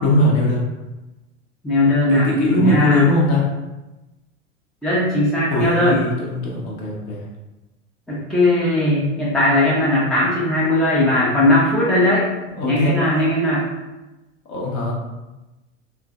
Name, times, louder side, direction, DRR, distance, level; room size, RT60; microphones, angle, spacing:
voice 1, 0.0-0.6 2.1-3.5 5.5-7.2 12.6-13.0 14.5-14.9, left 1 dB, 35° left, -2 dB, 0.7 m, -20 dB
voice 2, 1.6-3.0 4.8-6.0 8.1-12.3 12.6-13.7, left 1 dB, ahead, -7 dB, 0.5 m, -18 dB
3.1 x 2.1 x 2.4 m, 1.1 s
figure-of-eight pair, 85°, 38 cm